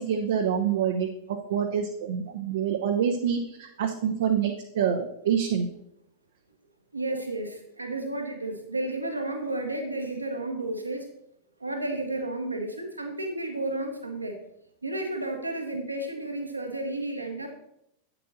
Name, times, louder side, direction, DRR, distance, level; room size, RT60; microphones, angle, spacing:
voice 1, 0.0-5.7, right 8 dB, 60° right, 4 dB, 0.7 m, -27 dB
voice 2, 6.9-11.1 11.6-14.4 14.8-17.5, right 2 dB, 85° right, 4 dB, 1.4 m, -32 dB
8.7 x 6.9 x 4.0 m, 0.77 s
figure-of-eight pair, 90°, 0 cm